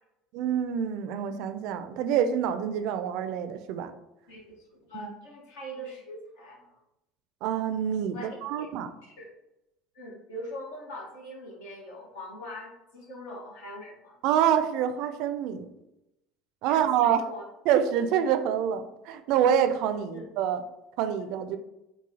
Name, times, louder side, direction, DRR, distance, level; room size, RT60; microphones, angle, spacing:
voice 1, 0.3-3.9 4.9-5.1 7.4-8.9 14.2-15.7 16.6-17.3 17.7-20.6 21.0-21.6, right 9 dB, 65° right, 10 dB, 0.3 m, -26 dB
voice 2, 4.3-6.7 8.1-8.7 9.0-9.3 9.9-14.2 16.6-17.4 20.1-20.2, equal, 75° left, -2 dB, 1.2 m, -42 dB
4.7 x 2.4 x 2.7 m, 0.90 s
hypercardioid pair, 75°, 0 cm